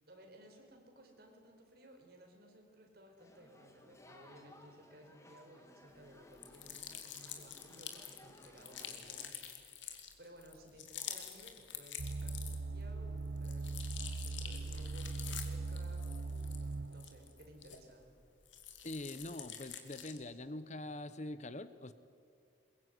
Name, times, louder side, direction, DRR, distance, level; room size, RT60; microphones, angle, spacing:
voice 1, 0.1-9.7 10.2-18.2, equal, 55° right, 3 dB, 4.6 m, -58 dB
sound 1, 3.2-9.3, left 1 dB, 15° left, 2.0 m, -60 dB
sound 2, 6.3-12.8 13.2-18.1 18.4-20.3, left 9 dB, 80° left, 2.5 m, -48 dB
sound 3, 12.0-17.1 17.7-17.8, right 3 dB, 75° right, 0.7 m, -40 dB
voice 2, 18.8-21.9, left 1 dB, 40° left, 13 dB, 0.9 m, -44 dB
22.0 x 22.0 x 9.5 m, 2.3 s
head